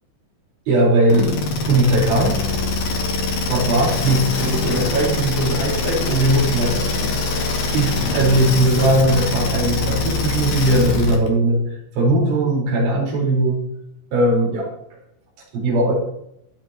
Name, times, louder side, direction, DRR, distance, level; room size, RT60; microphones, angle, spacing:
voice 1, 0.7-2.4 3.5-7.2 7.7-13.6 14.1-14.7 15.5-15.9, right 1 dB, 70° right, -3 dB, 7.0 m, -19 dB
sound 1, 1.1-11.3, left 3 dB, 50° left, 3.4 m, -23 dB
22.0 x 8.8 x 3.0 m, 0.79 s
omnidirectional pair, 5.6 m